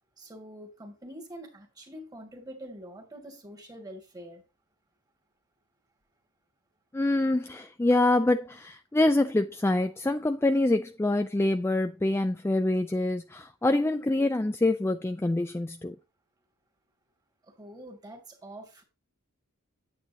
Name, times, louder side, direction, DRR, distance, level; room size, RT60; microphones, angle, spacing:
voice 1, 0.2-4.4 17.4-18.8, equal, 20° right, 2.3 m, -45 dB
voice 2, 6.9-16.0, left 2 dB, 10° left, 0.4 m, -25 dB
8.9 x 8.6 x 2.8 m
head